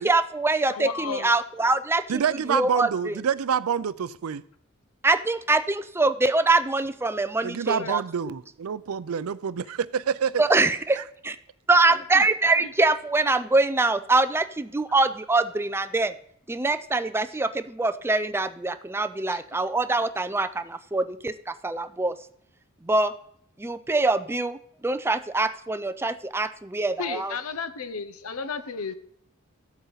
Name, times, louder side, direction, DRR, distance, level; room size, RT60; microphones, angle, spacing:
voice 1, 0.0-2.2 2.5-3.1 5.0-8.0 10.4-11.4 11.7-16.1 16.5-22.1 22.8-23.1 23.6-27.3, right 3 dB, 10° right, 11 dB, 0.4 m, -24 dB
voice 2, 0.7-1.3 7.8-7.9 12.1-12.3 12.6-12.7 19.3-19.4 27.0-28.9, left 5 dB, 90° left, 12 dB, 0.8 m, -33 dB
voice 3, 2.1-4.4 7.4-10.4 11.0-11.1, right 7 dB, 80° right, 17 dB, 0.4 m, -27 dB
14.5 x 8.1 x 4.0 m, 0.69 s
head